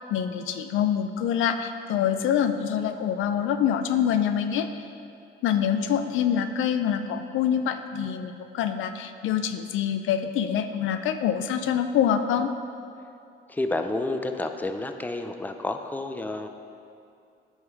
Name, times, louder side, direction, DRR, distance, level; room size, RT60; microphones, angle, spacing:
voice 1, 0.1-4.8 5.4-12.5, left 8 dB, 80° left, 9 dB, 0.5 m, -25 dB
voice 2, 13.5-16.5, left 2 dB, 10° left, 6 dB, 0.5 m, -30 dB
9.4 x 5.6 x 4.6 m, 2.5 s
cardioid pair, 90°, 20 cm